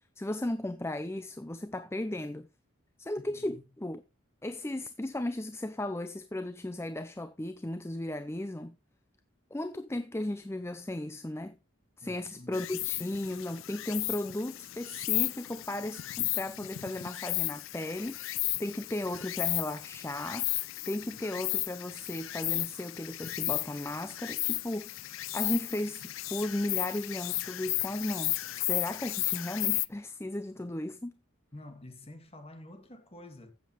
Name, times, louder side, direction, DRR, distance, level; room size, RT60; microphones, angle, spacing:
voice 1, 0.2-2.5 3.0-4.0 4.4-8.7 9.5-11.6 12.0-24.9 25.3-26.0 26.3-31.1, left 1 dB, 10° left, 0.5 m, -35 dB
voice 2, 3.2-3.6 12.0-12.6 31.5-33.5, left 1 dB, 30° left, 2.1 m, -49 dB
Insect, 12.5-29.9, left 19 dB, 75° left, 0.5 m, -34 dB
14.5 x 7.4 x 3.2 m
head